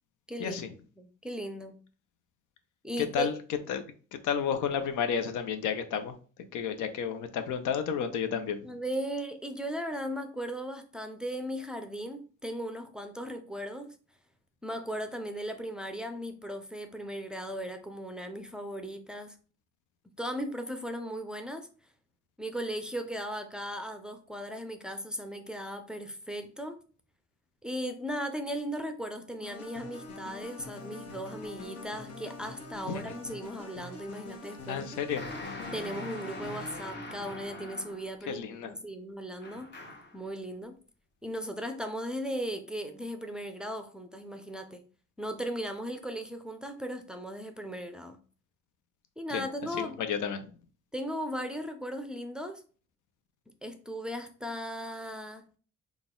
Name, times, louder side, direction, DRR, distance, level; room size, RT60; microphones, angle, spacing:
voice 1, 0.3-0.6 1.0-1.8 2.8-3.3 8.6-13.9 14.6-19.4 20.2-21.7 22.4-26.8 27.6-35.2 35.7-39.7 40.1-40.8 41.2-44.8 45.2-48.2 49.2-50.0 50.9-52.6 53.6-55.4, equal, 5° right, 0.5 m, -37 dB
voice 2, 3.0-3.3 3.7-3.8 4.1-6.1 6.5-8.7 32.9-33.1 34.7-35.2 38.3-38.7 49.3-49.4 49.8-50.5, left 7 dB, 80° left, 0.6 m, -31 dB
sound 1, 29.4-37.1, left 3 dB, 55° left, 1.3 m, -44 dB
sound 2, 35.2-38.2 39.4-40.2, left 2 dB, 35° left, 1.2 m, -42 dB
3.9 x 2.4 x 3.7 m
cardioid pair, 90°, 30 cm